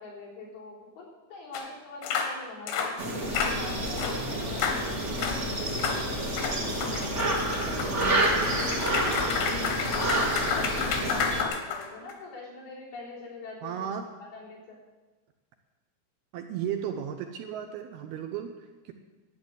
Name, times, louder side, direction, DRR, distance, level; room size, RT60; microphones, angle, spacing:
voice 1, 0.0-5.0 9.7-13.7 14.2-14.8, left 3 dB, 60° left, -5 dB, 5.6 m, -43 dB
sound 1, 1.5-1.6 2.0-2.3 2.7-2.9 3.3-3.6 4.0-4.2 4.6-4.8 5.2-5.4 5.8-6.0 6.4-12.1, left 6 dB, 90° left, 3.8 m, -30 dB
sound 2, 3.0-11.4, right 1 dB, 50° right, 0.8 m, -29 dB
voice 2, 7.7-8.7 13.6-14.1 16.3-18.9, right 9 dB, 75° right, 6 dB, 2.5 m, -35 dB
12.5 x 9.1 x 8.1 m, 1.2 s
omnidirectional pair, 5.0 m